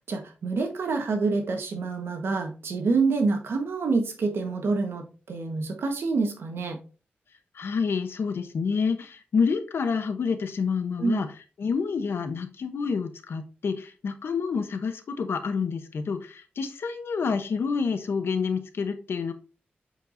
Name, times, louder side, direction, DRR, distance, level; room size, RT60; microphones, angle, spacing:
voice 1, 0.1-6.8 11.0-11.2, right 4 dB, 90° right, 4 dB, 1.3 m, -27 dB
voice 2, 7.5-11.3 11.6-19.3, left 5 dB, 80° left, 9 dB, 0.9 m, -28 dB
8.1 x 4.6 x 2.7 m, 0.34 s
wide cardioid pair, 100°, 4 cm